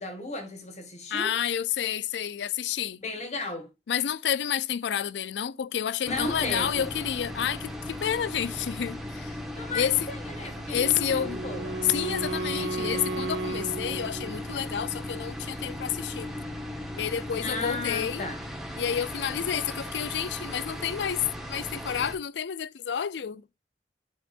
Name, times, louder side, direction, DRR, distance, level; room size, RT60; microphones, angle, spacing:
voice 1, 0.0-1.3 3.0-3.7 6.0-6.9 9.5-11.8 17.4-18.4, left 2 dB, 40° left, 1.6 m, -35 dB
voice 2, 1.1-3.0 3.9-9.4 9.7-10.1 10.7-11.5 11.8-16.3 17.0-18.3 18.8-23.5, left 9 dB, 80° left, 0.4 m, -29 dB
sound 1, 6.1-22.1, left 1 dB, ahead, 1.1 m, -37 dB
Wind instrument woodwind instrument, 10.7-14.6, right 2 dB, 90° right, 1.1 m, -34 dB
9.1 x 4.5 x 2.5 m
head